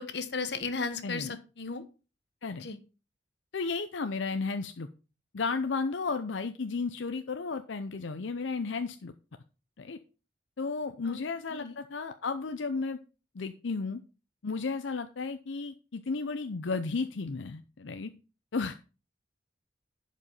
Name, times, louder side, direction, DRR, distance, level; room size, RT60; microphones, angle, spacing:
voice 1, 0.0-1.8 2.6-2.8 11.0-11.2 11.5-11.7, left 4 dB, 70° left, 1.1 m, -35 dB
voice 2, 3.5-4.9 5.3-9.1 9.8-10.0 10.6-13.0 13.3-14.0 14.4-18.1 18.5-18.7, left 4 dB, 90° left, 0.6 m, -33 dB
11.0 x 5.2 x 5.5 m
head